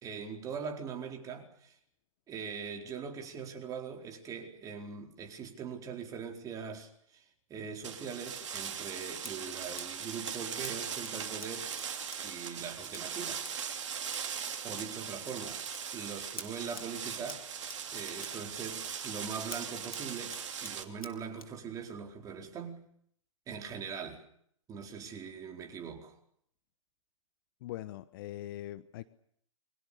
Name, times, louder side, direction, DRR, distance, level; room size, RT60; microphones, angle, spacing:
voice 1, 0.0-1.8 2.3-7.2 7.5-11.7 12.2-13.4 14.6-15.6 15.9-17.4 17.9-22.8 23.5-24.2 24.7-26.1, right 6 dB, 20° right, 4.4 m, -41 dB
sound 1, 7.8-20.8, right 7 dB, 55° right, 3.1 m, -40 dB
Scissors, 8.6-21.6, left 2 dB, 90° left, 3.7 m, -53 dB
voice 2, 27.6-29.0, left 14 dB, 40° left, 1.2 m, -42 dB
29.5 x 24.0 x 6.9 m
figure-of-eight pair, 120°, 18 cm